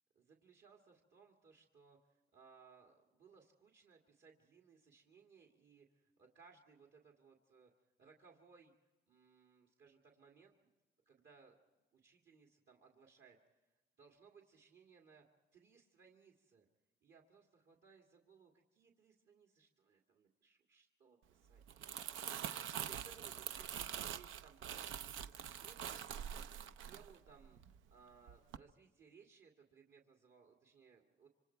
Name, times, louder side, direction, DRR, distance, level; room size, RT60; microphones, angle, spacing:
voice 1, 0.2-7.7 8.0-8.7 9.1-10.6 11.1-11.6 11.9-13.7 14.0-15.3 15.5-16.7 17.0-18.5 18.8-31.3, right 5 dB, 65° right, 1 dB, 2.3 m, -65 dB
Crumpling crinkling, 21.5-27.9 28.3-28.6, right 9 dB, 80° right, 0.6 m, -45 dB
26.5 x 25.0 x 4.6 m, 1.1 s
cardioid pair, 90°, 20 cm